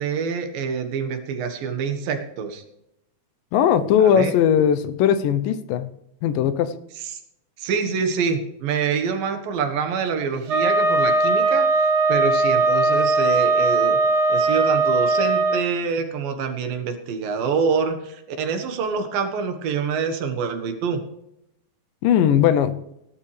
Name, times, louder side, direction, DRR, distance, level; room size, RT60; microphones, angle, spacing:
voice 1, 0.0-2.6 4.0-4.3 7.6-14.0 14.3-21.0, right 6 dB, 90° right, 6 dB, 3.2 m, -26 dB
voice 2, 3.5-5.9 6.2-6.7 22.0-22.8, left 9 dB, 80° left, 12 dB, 2.5 m, -19 dB
Wind instrument woodwind instrument, 10.5-15.6, right 3 dB, 65° right, 2.7 m, -19 dB
17.5 x 11.5 x 3.3 m, 0.81 s
omnidirectional pair, 3.9 m